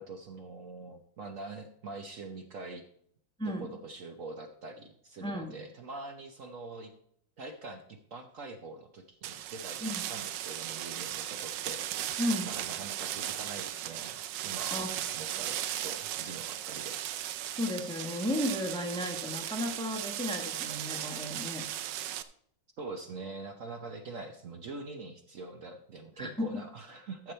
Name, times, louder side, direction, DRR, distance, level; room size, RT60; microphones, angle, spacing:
voice 1, 0.0-2.8 3.4-6.9 7.4-11.8 12.5-14.2 14.4-17.0 22.8-27.3, right 3 dB, 55° right, 5 dB, 1.1 m, -44 dB
voice 2, 3.4-3.7 5.2-5.6 9.8-10.0 12.2-12.5 14.7-15.0 15.3-15.4 17.6-21.7 26.2-26.5, left 1 dB, 5° left, 4 dB, 1.0 m, -34 dB
sound 1, 9.2-22.2, right 12 dB, 85° right, 1.3 m, -37 dB
13.5 x 6.9 x 4.3 m, 0.68 s
omnidirectional pair, 1.9 m